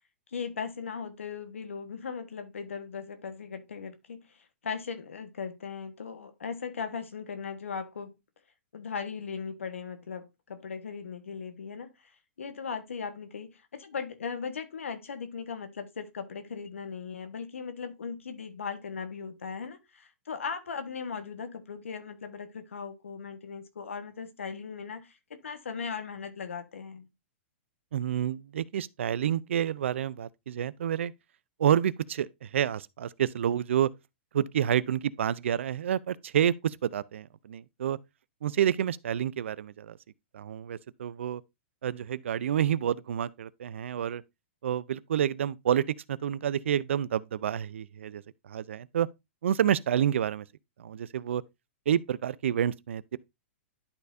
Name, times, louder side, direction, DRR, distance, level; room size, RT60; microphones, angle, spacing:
voice 1, 0.3-8.1 8.7-12.1 12.4-27.1, left 6 dB, 85° left, 1.3 m, -38 dB
voice 2, 27.9-31.1 31.6-33.9 34.3-38.0 38.4-40.0 40.3-41.4 41.8-44.2 44.6-49.1 49.4-50.5 50.8-51.4 51.9-53.2, right 9 dB, 75° right, 0.4 m, -29 dB
11.5 x 4.2 x 2.6 m
hypercardioid pair, 130°, 7 cm